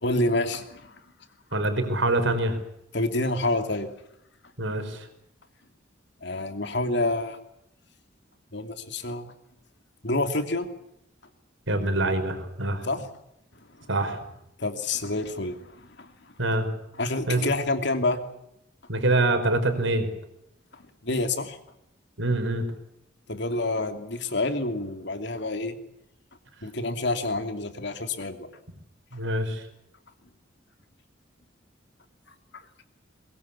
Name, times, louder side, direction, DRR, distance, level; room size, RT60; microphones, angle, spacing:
voice 1, 0.0-0.9 2.9-3.9 6.2-7.4 8.5-9.3 10.0-10.7 12.8-13.1 14.6-16.1 17.0-18.2 20.7-21.6 23.3-25.8 26.6-28.5 32.5-32.6, left 2 dB, 60° left, 7 dB, 2.9 m, -28 dB
voice 2, 1.5-2.6 4.6-5.1 11.7-12.8 13.9-14.2 16.4-16.7 17.3-17.4 18.9-20.1 22.2-22.6 29.1-29.6, right 2 dB, 70° right, 7 dB, 4.9 m, -25 dB
23.0 x 21.5 x 8.5 m, 0.79 s
head